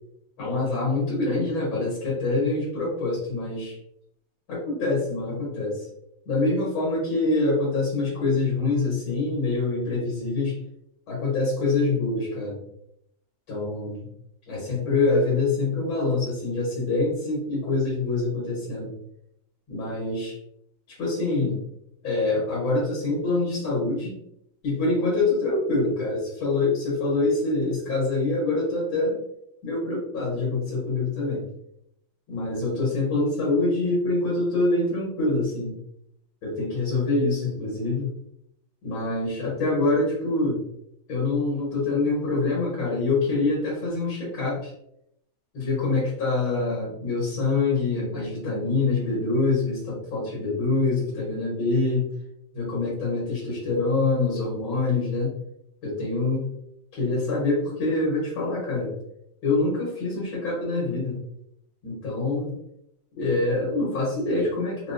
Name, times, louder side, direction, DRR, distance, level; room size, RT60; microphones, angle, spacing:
voice 1, 0.4-3.8 4.5-5.9 6.3-10.6 11.1-12.6 13.5-14.1 14.5-18.9 19.7-20.4 20.9-21.6 22.0-24.1 24.6-29.2 29.6-31.4 32.3-35.7 36.4-38.1 38.8-40.6 41.1-44.7 45.5-52.1 52.5-55.3 55.8-56.5 56.9-58.9 59.4-61.2 61.8-62.6 63.2-64.9, left 3 dB, 90° left, -6 dB, 2.1 m, -25 dB
4.4 x 2.1 x 2.5 m, 0.76 s
omnidirectional pair, 2.1 m